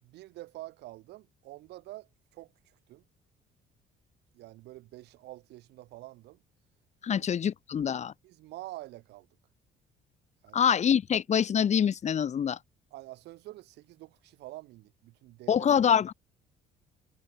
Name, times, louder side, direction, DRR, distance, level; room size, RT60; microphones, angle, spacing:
voice 1, 0.0-3.0 4.3-6.4 7.1-7.3 8.2-9.3 10.4-10.7 12.9-15.7, right 17 dB, 80° right, 6.0 m, -47 dB
voice 2, 7.0-8.1 10.5-12.6 15.5-16.1, left 8 dB, 45° left, 2.1 m, -25 dB
cardioid pair, 110°, 17 cm